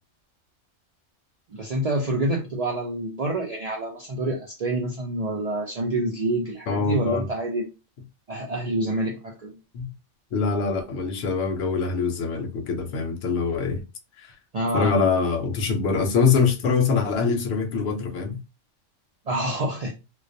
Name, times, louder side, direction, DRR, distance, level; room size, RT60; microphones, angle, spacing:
voice 1, 1.5-7.7 8.3-9.6 14.5-15.0 19.3-19.9, right 1 dB, 80° right, 0.3 m, -27 dB
voice 2, 6.7-7.3 9.7-9.9 10.3-13.8 14.2-14.3 14.7-18.4, left 5 dB, 65° left, 0.8 m, -24 dB
2.2 x 2.1 x 2.6 m
omnidirectional pair, 1.3 m